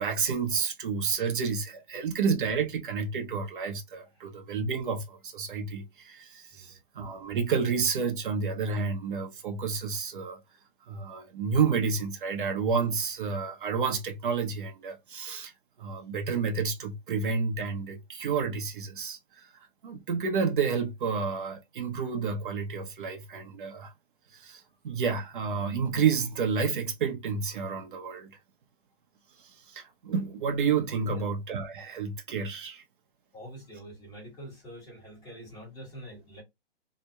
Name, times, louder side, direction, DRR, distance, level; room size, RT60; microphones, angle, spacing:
voice 1, 0.0-10.4 10.9-15.5 15.8-23.9 24.3-28.4 29.4-32.8, right 5 dB, 60° right, 0.6 m, -30 dB
voice 2, 33.3-36.4, right 1 dB, 15° left, 1.4 m, -45 dB
2.7 x 2.1 x 2.2 m
hypercardioid pair, 155°, 30 cm